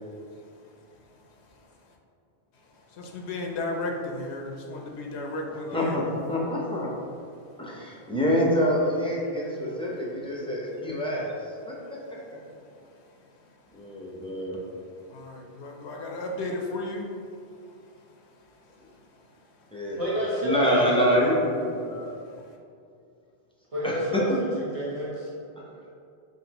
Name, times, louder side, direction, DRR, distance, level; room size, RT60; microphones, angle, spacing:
voice 1, 2.9-6.1 15.1-17.1 22.4-22.5, left 2 dB, 90° left, 1 dB, 0.9 m, -34 dB
voice 2, 5.7-6.0 6.3-6.9 7.6-11.3 11.7-11.8 13.7-14.6 19.7-20.0 20.4-22.1 23.8-24.4, equal, 5° left, -5 dB, 0.5 m, -26 dB
voice 3, 20.0-21.4 23.7-25.3, equal, 35° right, -8 dB, 1.1 m, -29 dB
5.6 x 2.8 x 2.9 m, 2.5 s
omnidirectional pair, 1.1 m